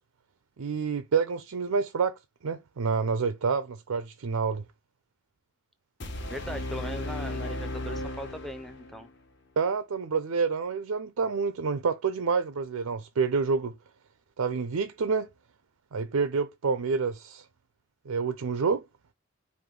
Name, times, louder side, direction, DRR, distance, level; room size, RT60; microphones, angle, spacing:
voice 1, 0.6-4.6 9.6-13.8 14.4-15.3 15.9-17.4 18.1-18.8, right 5 dB, 80° right, 0.5 m, -28 dB
sound 1, 6.0-9.0, left 1 dB, 50° left, 1.0 m, -35 dB
voice 2, 6.3-9.1, equal, ahead, 0.5 m, -39 dB
5.1 x 2.6 x 3.7 m
head